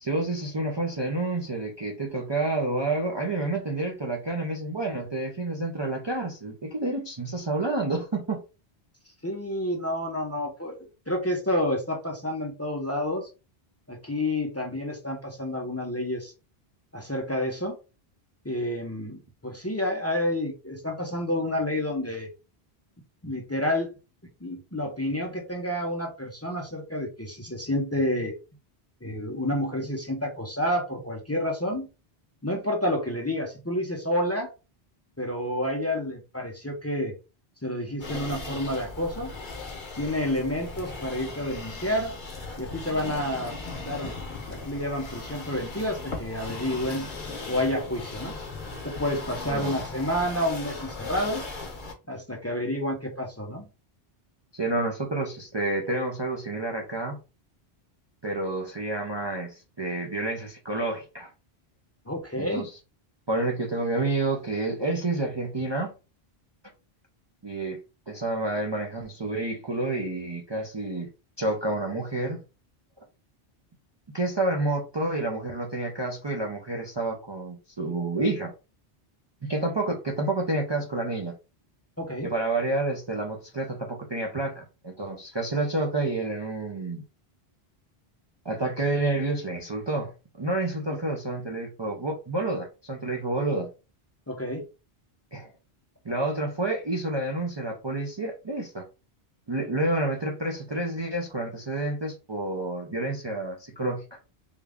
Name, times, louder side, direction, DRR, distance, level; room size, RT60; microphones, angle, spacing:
voice 1, 0.0-8.4 42.9-43.1 49.5-49.7 54.5-57.2 58.2-61.3 62.4-62.8 63.3-65.9 67.4-67.8 68.1-71.1 71.4-72.4 74.1-78.5 79.4-81.4 82.2-87.0 88.4-93.7 95.3-95.5 96.0-98.8 99.5-104.0, right 2 dB, 35° right, 0 dB, 0.5 m, -29 dB
voice 2, 9.2-13.3 13.9-16.3 16.9-17.7 18.4-22.3 23.2-23.9 24.4-28.3 29.0-31.9 32.4-34.5 35.2-37.1 37.6-39.3 40.0-42.1 42.6-43.5 43.8-44.1 44.5-47.1 47.5-48.3 48.8-51.4 52.1-53.7 62.1-62.7 82.0-82.3 94.3-94.6, left 1 dB, 15° left, 1 dB, 0.6 m, -29 dB
sound 1, 38.0-51.9, left 3 dB, 50° left, 1.0 m, -38 dB
3.6 x 2.3 x 3.5 m, 0.31 s
omnidirectional pair, 1.1 m